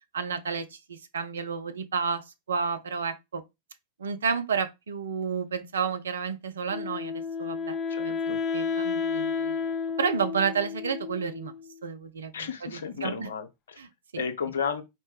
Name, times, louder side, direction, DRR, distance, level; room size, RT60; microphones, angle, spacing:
voice 1, 0.1-3.4 4.0-7.1 7.4-11.5 11.8-13.3 13.8-14.2, right 6 dB, 70° right, 0.6 m, -31 dB
Wind instrument woodwind instrument, 6.7-11.7, left 5 dB, 30° left, 0.5 m, -31 dB
voice 2, 7.9-8.4 12.3-13.8 14.2-14.8, left 6 dB, 65° left, 0.7 m, -33 dB
4.3 x 2.9 x 3.2 m
figure-of-eight pair, 90°, 0 cm